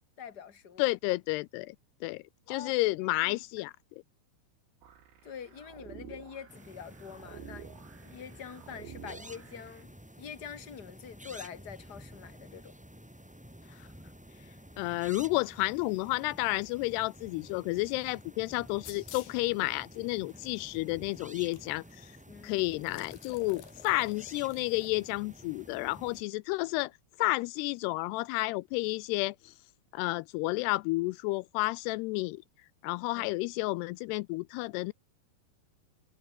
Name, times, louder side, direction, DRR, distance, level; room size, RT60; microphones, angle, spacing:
voice 1, 0.2-0.9 2.5-2.7 3.0-3.7 5.2-7.7 8.0-9.9 10.2-12.7 20.3-20.4 22.3-22.6 33.1-33.3, left 7 dB, 40° left, 1.5 m, -46 dB
voice 2, 0.8-1.8 2.0-3.7 14.8-22.1 22.4-26.9 27.2-29.5 29.9-32.4 32.8-34.9, left 22 dB, 85° left, 2.4 m, -31 dB
sound 1, 4.8-9.8, right 8 dB, 75° right, 5.7 m, -50 dB
sound 2, 6.5-26.2, equal, ahead, 1.8 m, -51 dB
sound 3, 18.8-19.4 20.3-20.4 21.5-21.6 21.9-22.0 22.7-24.9, left 11 dB, 60° left, 3.2 m, -50 dB
omnidirectional pair, 5.2 m